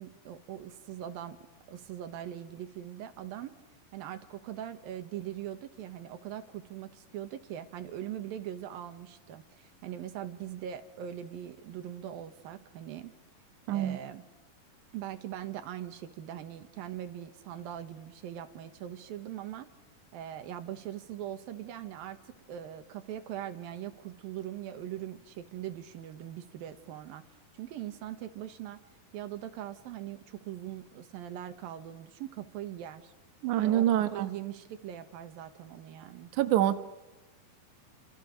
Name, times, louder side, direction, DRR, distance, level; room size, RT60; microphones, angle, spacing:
voice 1, 0.0-1.4 1.7-3.5 3.9-13.1 13.7-14.2 14.9-19.7 20.1-27.2 27.5-28.8 29.1-33.1 33.6-36.3, right 11 dB, 90° right, 9 dB, 3.2 m, -41 dB
voice 2, 13.7-14.0 33.4-34.3 36.4-36.8, right 12 dB, 65° right, 9 dB, 2.5 m, -25 dB
29.0 x 27.0 x 6.5 m, 1.1 s
omnidirectional pair, 4.1 m